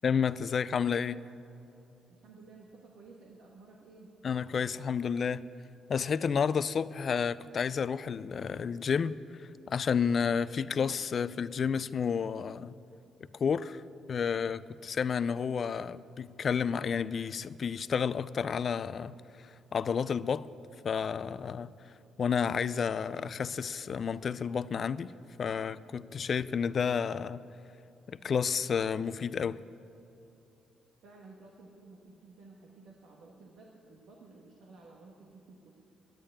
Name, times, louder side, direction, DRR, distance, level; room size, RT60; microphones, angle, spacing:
voice 1, 0.0-1.2 4.2-5.5 5.9-12.7 13.4-13.8 14.1-20.5 20.8-25.1 25.4-27.4 28.1-29.6, left 6 dB, 50° left, 0.4 m, -31 dB
voice 2, 2.1-4.1 31.0-35.7, right 3 dB, 85° right, 1.4 m, -54 dB
10.5 x 10.5 x 8.6 m
cardioid pair, 90°, 0 cm